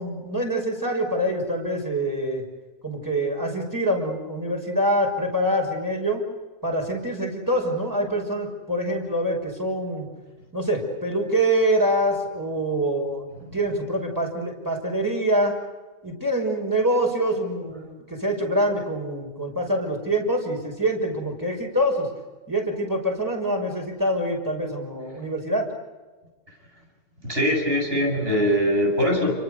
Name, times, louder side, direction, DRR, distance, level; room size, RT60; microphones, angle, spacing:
voice 1, 0.0-2.4 2.8-6.2 6.6-10.1 10.5-15.6 16.0-22.1 22.5-25.7, right 1 dB, 15° right, 0 dB, 6.0 m, -25 dB
voice 2, 27.2-29.3, equal, 50° right, 1 dB, 7.6 m, -22 dB
29.5 x 23.5 x 6.8 m, 1.3 s
omnidirectional pair, 1.2 m